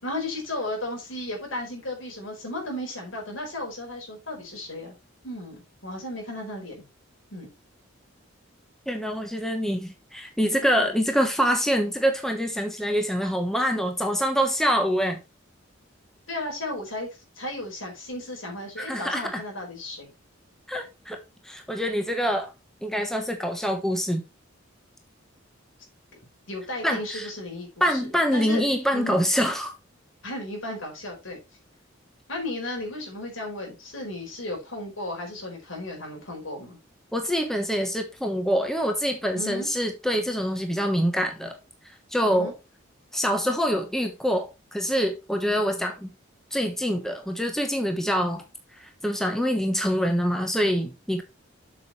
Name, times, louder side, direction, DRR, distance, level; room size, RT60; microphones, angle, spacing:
voice 1, 0.0-4.9 5.2-6.8 7.3-7.5 16.3-17.1 17.3-20.1 26.5-28.6 28.9-29.2 30.2-31.4 32.3-36.8 39.3-39.7 42.2-42.5, left 1 dB, 75° left, 5.0 m, -34 dB
voice 2, 8.9-15.2 18.8-19.4 20.7-21.2 21.4-22.5 22.8-24.2 26.8-27.3 27.8-29.7 37.1-41.5 42.1-42.5 43.1-46.1 46.5-48.4 48.8-51.2, equal, ahead, 1.1 m, -25 dB
7.8 x 6.3 x 4.3 m
head